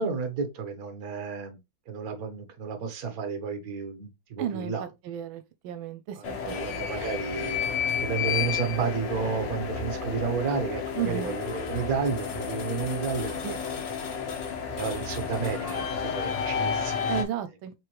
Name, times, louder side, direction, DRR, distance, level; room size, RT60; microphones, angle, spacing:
voice 1, 0.0-1.6 1.9-4.8 6.2-7.6 8.0-13.6 14.8-17.2, right 5 dB, 50° right, 1.4 m, -32 dB
voice 2, 4.4-6.9 10.9-11.3 13.4-13.6 17.1-17.7, right 10 dB, 85° right, 1.4 m, -34 dB
sound 1, 6.2-17.2, left 6 dB, 70° left, 1.5 m, -31 dB
5.0 x 3.3 x 3.1 m
omnidirectional pair, 2.2 m